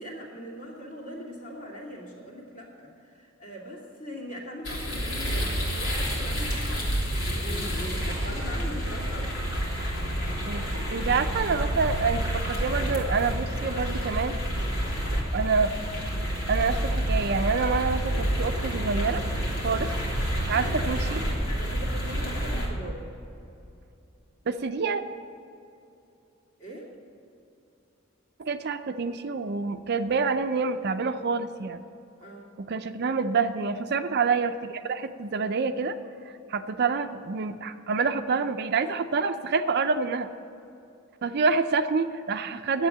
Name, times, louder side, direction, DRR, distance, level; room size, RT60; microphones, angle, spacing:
voice 1, 0.0-9.3 19.7-20.0 21.5-23.1 26.6-26.9 32.2-32.5, equal, 40° left, -3 dB, 2.6 m, -40 dB
sound 1, 4.6-22.7, equal, 80° left, 3.2 m, -29 dB
voice 2, 10.9-14.3 15.3-15.7 16.5-19.2 19.6-19.9 20.4-21.2 24.5-25.0 28.4-31.8 32.6-36.0 36.3-40.3 41.2-42.9, right 4 dB, 55° right, 9 dB, 0.5 m, -27 dB
10.5 x 8.2 x 8.6 m, 2.8 s
head